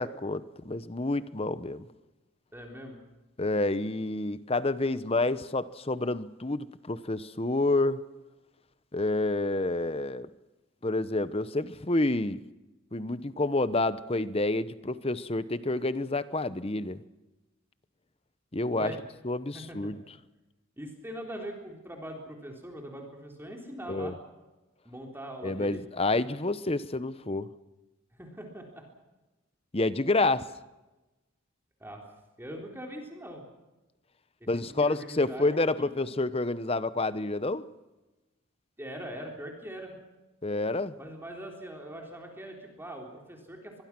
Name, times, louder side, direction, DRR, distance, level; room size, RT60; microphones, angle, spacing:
voice 1, 0.0-1.9 3.4-8.0 8.9-10.3 10.8-12.4 12.9-17.0 18.5-18.9 19.2-20.0 23.9-24.1 25.4-27.5 29.7-30.4 34.5-37.6 40.4-40.9, left 2 dB, 30° left, 14 dB, 0.9 m, -28 dB
voice 2, 2.5-3.0 18.7-19.0 19.5-19.9 20.8-24.2 24.9-25.8 28.1-28.9 31.8-32.1 32.4-33.5 34.4-35.6 36.0-36.1 38.8-40.0 41.0-43.8, right 1 dB, 10° right, 1 dB, 3.6 m, -42 dB
24.5 x 21.5 x 6.1 m, 1.1 s
head